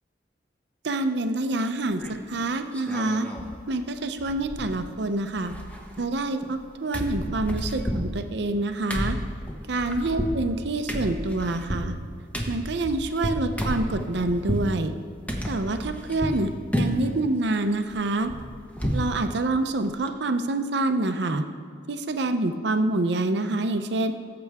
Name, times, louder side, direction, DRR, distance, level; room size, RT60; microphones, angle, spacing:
voice 1, 0.8-2.0 2.3-3.3 3.7-5.5 6.0-9.2 9.7-11.9 12.5-14.9 15.5-18.3 18.9-21.5 21.9-24.1, right 2 dB, 65° right, 8 dB, 0.7 m, -26 dB
sound 1, 2.0-2.4 2.7-3.5 3.8-3.9 4.2-5.0 5.3-6.6 6.9-14.7 15.3-16.4 16.7-17.2 17.5-19.1 19.5-19.6 19.9-20.1, equal, 10° left, 1.2 m, -31 dB
17.5 x 7.7 x 3.6 m, 2.2 s
head